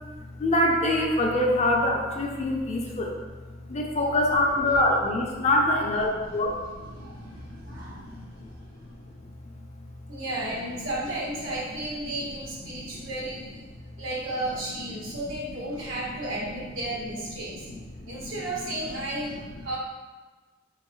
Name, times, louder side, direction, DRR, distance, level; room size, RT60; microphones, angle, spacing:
voice 1, 0.4-3.1 3.7-7.4 7.7-8.2 13.0-13.1 18.0-18.3, left 1 dB, 35° left, 0 dB, 0.5 m, -25 dB
voice 2, 6.1-6.6 6.9-8.2 10.1-13.6 14.0-17.6 18.1-19.8, right 1 dB, 85° right, -5 dB, 1.2 m, -34 dB
4.1 x 3.1 x 3.1 m, 1.3 s
head